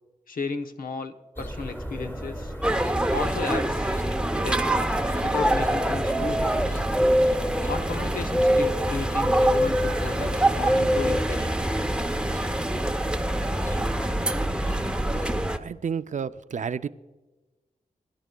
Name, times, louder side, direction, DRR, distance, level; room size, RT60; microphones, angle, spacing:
voice 1, 0.3-2.5 3.1-3.9 4.4-4.6 5.2-6.7 7.7-11.5, left 4 dB, 75° left, 5 dB, 0.9 m, -34 dB
sound 1, 1.4-15.3, equal, 15° left, 1.5 m, -28 dB
sound 2, 2.6-15.6, right 1 dB, 5° right, 0.7 m, -26 dB
voice 2, 15.6-16.9, right 7 dB, 55° right, 13 dB, 0.4 m, -30 dB
21.5 x 11.0 x 2.3 m, 1.2 s
wide cardioid pair, 90°, 15 cm